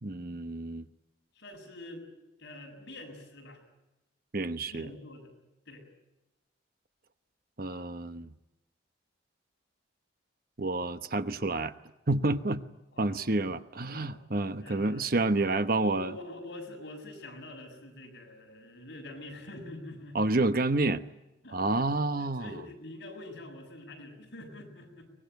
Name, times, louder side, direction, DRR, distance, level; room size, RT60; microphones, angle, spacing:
voice 1, 0.0-0.9 4.3-4.9 7.6-8.3 10.6-11.7 12.1-12.6 13.0-16.1 20.1-21.0 21.5-22.5, right 2 dB, 45° right, 11 dB, 1.0 m, -29 dB
voice 2, 1.3-2.0 2.4-3.6 4.6-5.3 5.7-5.9 12.9-13.4 13.9-14.2 14.6-15.5 15.8-20.3 21.4-25.1, left 1 dB, 55° left, 1 dB, 7.2 m, -46 dB
24.0 x 20.5 x 9.3 m, 0.97 s
head